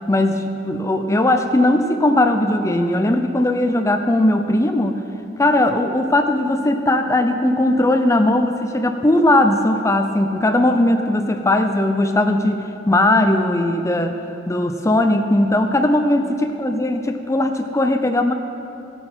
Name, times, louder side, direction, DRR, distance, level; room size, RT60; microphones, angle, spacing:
voice 1, 0.1-5.0 5.4-14.1 14.5-18.3, left 1 dB, 15° left, 6 dB, 0.5 m, -18 dB
16.5 x 8.5 x 4.4 m, 2.6 s
head